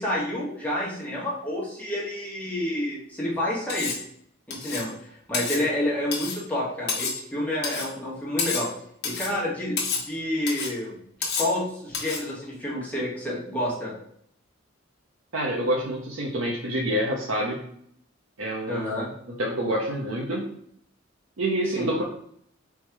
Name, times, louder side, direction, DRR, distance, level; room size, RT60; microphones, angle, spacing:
voice 1, 0.0-3.9 4.5-8.7 9.0-11.0 11.4-13.9 18.7-19.1 21.7-21.9, left 1 dB, 10° left, -6 dB, 1.3 m, -29 dB
Cutlery silverware, 3.7-4.1 4.5-4.9 5.3-5.6 6.1-6.4 6.9-7.2 7.6-7.9 8.4-8.7 9.0-9.4 9.8-10.1 10.5-10.7 11.2-11.6 11.9-12.3, left 5 dB, 55° left, 1.0 m, -29 dB
voice 2, 15.3-17.6 18.4-19.1 19.4-20.4 21.4-22.0, right 1 dB, 85° right, -2 dB, 0.7 m, -27 dB
3.5 x 3.2 x 4.6 m, 0.68 s
head